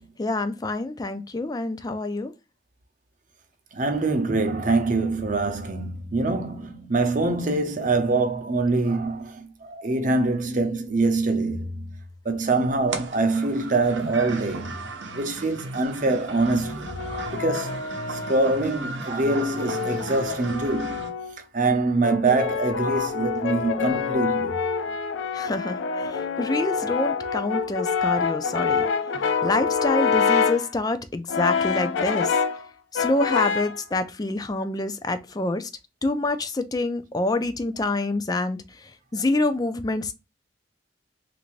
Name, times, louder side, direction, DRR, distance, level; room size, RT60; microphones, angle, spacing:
voice 1, 0.2-2.3 25.3-32.4 32.9-35.7 36.0-40.1, left 2 dB, 20° left, 0.4 m, -27 dB
voice 2, 3.7-11.7 12.3-14.7 15.1-17.7 18.1-21.0 21.5-24.5 29.4-29.6, right 3 dB, 45° right, 0.7 m, -24 dB
sound 1, 12.9-21.1, right 2 dB, 80° right, 0.7 m, -36 dB
Brass instrument, 16.6-18.6 19.3-21.4 22.0-30.7 31.3-32.6 33.0-33.8, left 6 dB, 90° left, 0.4 m, -26 dB
3.3 x 2.6 x 3.1 m
head